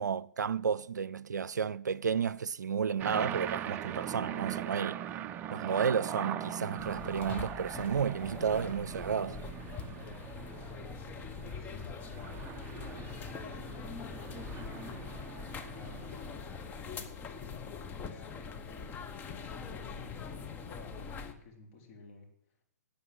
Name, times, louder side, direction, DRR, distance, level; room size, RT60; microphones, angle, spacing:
voice 1, 0.0-5.0 5.5-9.4, right 7 dB, 80° right, 0.4 m, -32 dB
sound 1, 3.0-16.7, right 10 dB, 20° right, 0.4 m, -41 dB
sound 2, 6.8-21.3, left 5 dB, 20° left, 1.1 m, -43 dB
voice 2, 11.6-12.3 12.9-15.0 15.7-16.3 16.7-19.0 19.4-22.3, left 3 dB, 35° left, 3.7 m, -53 dB
12.5 x 8.3 x 7.9 m
hypercardioid pair, 130°, 9 cm